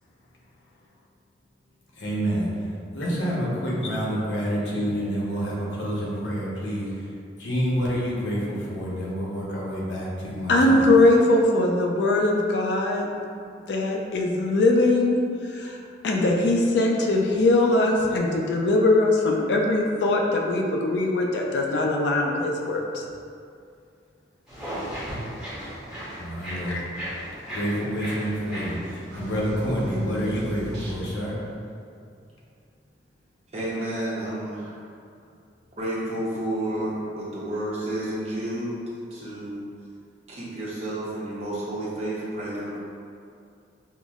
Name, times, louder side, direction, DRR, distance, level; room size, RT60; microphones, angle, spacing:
voice 1, 2.0-2.5 2.9-7.1 7.4-10.9 26.2-26.8 27.5-31.4, equal, 90° left, -5 dB, 0.8 m, -28 dB
voice 2, 10.5-13.1 13.7-15.2 15.5-15.8 16.0-23.0 26.7-26.8, left 2 dB, 70° left, 0 dB, 0.4 m, -21 dB
sound 1, 24.5-29.6, equal, 5° right, 0.8 m, -36 dB
sound 2, 29.1-31.4, right 1 dB, 75° right, 0.7 m, -35 dB
voice 3, 33.5-34.8 35.8-38.8 39.1-39.6 40.3-42.8, right 1 dB, 35° right, -7 dB, 0.7 m, -30 dB
5.4 x 2.0 x 2.3 m, 2.4 s
head